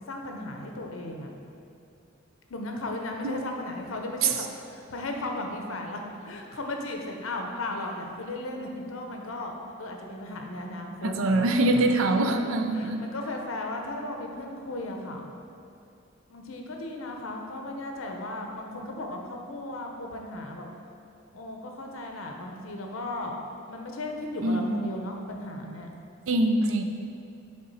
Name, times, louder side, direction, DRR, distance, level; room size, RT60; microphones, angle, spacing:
voice 1, 0.1-1.3 2.5-9.5 9.8-11.5 12.3-15.3 16.3-20.7 21.3-23.3 23.7-25.9, left 2 dB, 75° left, 2 dB, 0.7 m, -36 dB
voice 2, 11.0-13.0 24.4-25.0 26.3-26.8, right 2 dB, 70° right, 6 dB, 0.5 m, -24 dB
6.7 x 3.8 x 4.1 m, 2.5 s
head